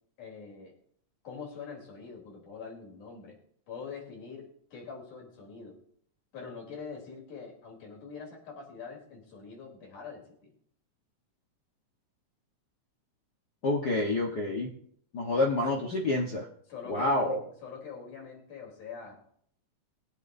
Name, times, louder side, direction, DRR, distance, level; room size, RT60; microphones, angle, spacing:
voice 1, 0.2-0.7 1.2-3.4 3.7-5.8 6.3-10.5 16.7-17.4 17.6-19.2, left 5 dB, 75° left, -1 dB, 4.9 m, -44 dB
voice 2, 13.6-14.7 15.1-16.5 16.9-17.4, left 2 dB, 50° left, -1 dB, 1.2 m, -28 dB
22.5 x 8.1 x 2.7 m, 0.64 s
omnidirectional pair, 3.4 m